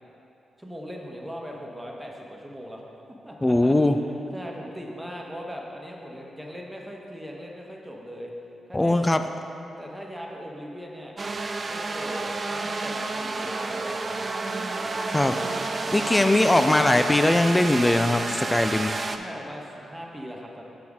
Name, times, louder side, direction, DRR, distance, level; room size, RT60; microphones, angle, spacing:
voice 1, 0.6-2.8 3.2-3.8 4.3-8.3 8.7-9.0 9.8-11.1 11.7-14.3 15.8-16.3 18.4-18.6 19.1-20.6, equal, 10° right, -1 dB, 1.2 m, -39 dB
voice 2, 3.4-4.0 8.7-9.2 15.1-15.4 15.9-18.9, left 1 dB, 20° left, 8 dB, 0.4 m, -20 dB
sound 1, 11.2-19.2, right 3 dB, 45° right, 0.4 m, -30 dB
7.6 x 5.8 x 3.6 m, 2.8 s
hypercardioid pair, 40°, 0 cm